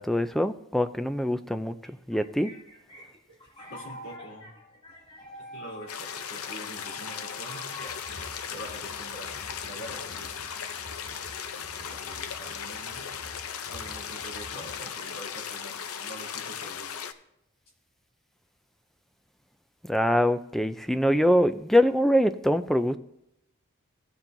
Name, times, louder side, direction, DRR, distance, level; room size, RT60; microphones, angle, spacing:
voice 1, 0.0-2.5 19.9-23.0, equal, ahead, 10 dB, 0.3 m, -24 dB
sound 1, 1.9-9.4, equal, 25° left, 2.5 m, -47 dB
voice 2, 3.7-4.5 5.5-8.1 8.5-10.5 11.6-13.1 13.7-17.0, equal, 60° left, -3 dB, 3.5 m, -45 dB
sound 2, 5.9-17.1, left 7 dB, 80° left, 0.6 m, -37 dB
sound 3, 7.7-14.8, equal, 60° right, 2.6 m, -49 dB
17.0 x 7.2 x 2.6 m, 0.83 s
head